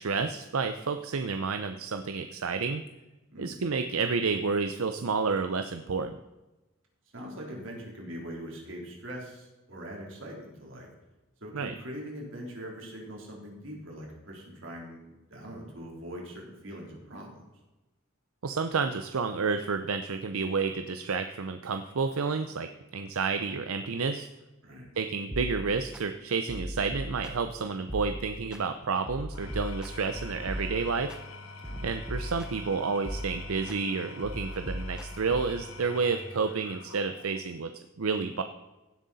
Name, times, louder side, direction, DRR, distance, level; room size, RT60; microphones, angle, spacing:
voice 1, 0.0-2.8 3.4-6.2 11.5-11.7 18.4-24.3 25.0-31.1 31.8-37.7 38.0-38.4, right 4 dB, 80° right, 8 dB, 0.6 m, -30 dB
voice 2, 7.1-10.9 11.4-17.5 24.6-24.9 31.6-31.8, equal, 60° right, -1 dB, 3.4 m, -42 dB
sound 1, 25.3-26.0 26.5-27.5 27.9-28.6 29.1-31.2 31.6-32.7 33.0-33.8 34.2-35.6, equal, 5° right, 0.7 m, -38 dB
Engine / Tools, 29.2-37.5, left 3 dB, 75° left, 1.7 m, -46 dB
16.5 x 7.7 x 4.1 m, 1.1 s
head